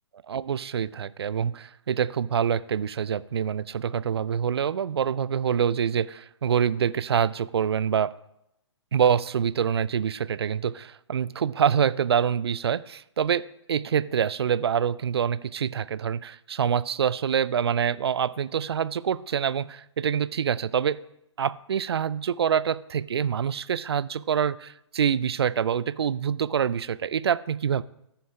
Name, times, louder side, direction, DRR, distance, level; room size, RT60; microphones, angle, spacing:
voice 1, 0.3-8.1 8.9-21.0 21.4-27.8, right 8 dB, 55° right, 0.4 m, -26 dB
14.0 x 7.1 x 3.4 m
figure-of-eight pair, 125°, 16 cm